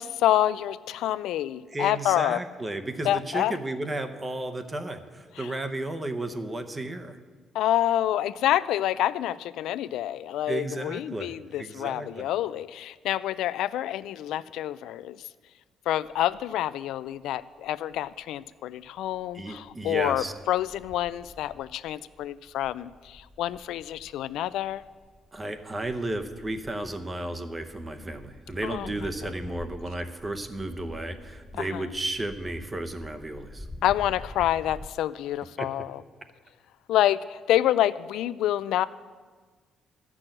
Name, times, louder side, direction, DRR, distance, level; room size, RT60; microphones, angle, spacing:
voice 1, 0.0-2.4 3.0-3.6 5.4-5.5 7.5-15.2 15.9-24.8 28.6-28.9 29.2-29.3 31.6-31.8 33.8-36.0 36.9-38.9, left 12 dB, 85° left, 15 dB, 0.3 m, -27 dB
voice 2, 1.7-7.2 10.5-11.3 11.6-12.3 19.3-20.3 25.3-33.7 35.6-35.7, right 1 dB, 20° right, 8 dB, 0.8 m, -33 dB
sound 1, 16.0-16.7 17.1-18.4 18.8-34.9, left 1 dB, 15° left, 0.4 m, -48 dB
13.0 x 6.1 x 8.9 m, 1.5 s
cardioid pair, 140°, 0 cm